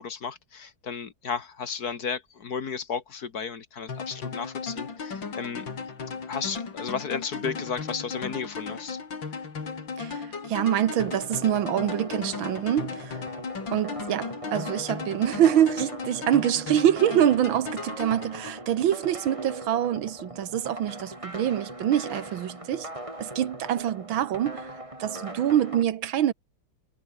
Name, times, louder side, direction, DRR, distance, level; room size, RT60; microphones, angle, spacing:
voice 1, 0.0-5.7 6.3-9.0, left 6 dB, 50° left, 2.0 m, -34 dB
sound 1, 3.9-18.9, left 5 dB, 70° left, 3.7 m, -36 dB
voice 2, 10.0-13.2 13.7-22.9 23.2-24.7 25.0-26.3, right 11 dB, 80° right, 1.9 m, -25 dB
sound 2, 11.1-25.8, right 1 dB, 15° right, 5.0 m, -40 dB
omnidirectional pair, 2.2 m